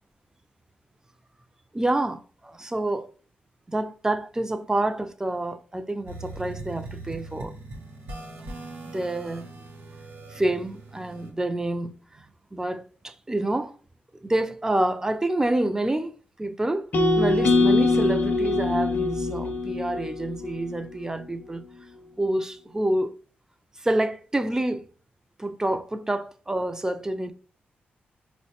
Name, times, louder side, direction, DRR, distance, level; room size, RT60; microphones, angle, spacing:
voice 1, 1.7-3.1 3.7-7.5 8.9-9.5 10.3-12.3 12.5-13.7 14.2-16.1 16.4-16.9 17.2-21.6 22.2-23.1 23.8-24.8 25.4-27.3, right 1 dB, 15° right, 0.3 m, -27 dB
sound 1, 6.1-11.3, right 2 dB, 85° right, 0.6 m, -40 dB
sound 2, 16.9-21.1, left 3 dB, 50° left, 0.5 m, -23 dB
3.8 x 2.1 x 2.8 m
cardioid pair, 85°, 4 cm